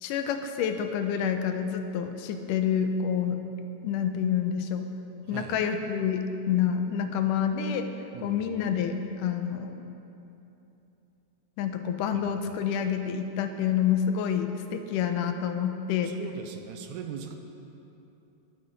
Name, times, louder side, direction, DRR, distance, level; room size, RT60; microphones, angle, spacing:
voice 1, 0.0-3.4 3.8-4.9 5.3-7.9 8.2-9.8 11.6-16.1, left 8 dB, 90° left, 7 dB, 2.3 m, -28 dB
voice 2, 8.1-8.5 16.0-17.3, right 7 dB, 80° right, 5 dB, 2.0 m, -39 dB
20.5 x 7.6 x 4.0 m, 2.9 s
omnidirectional pair, 3.6 m